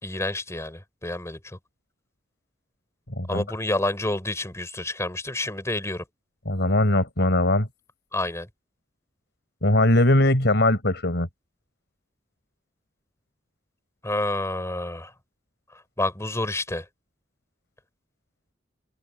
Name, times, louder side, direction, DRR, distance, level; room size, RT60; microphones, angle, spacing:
voice 1, 0.0-1.6 3.3-6.0 8.1-8.5 14.0-15.1 15.7-16.9, left 2 dB, 15° left, 3.4 m, -29 dB
voice 2, 6.5-7.7 9.6-11.3, left 1 dB, 65° left, 4.4 m, -20 dB
open air
head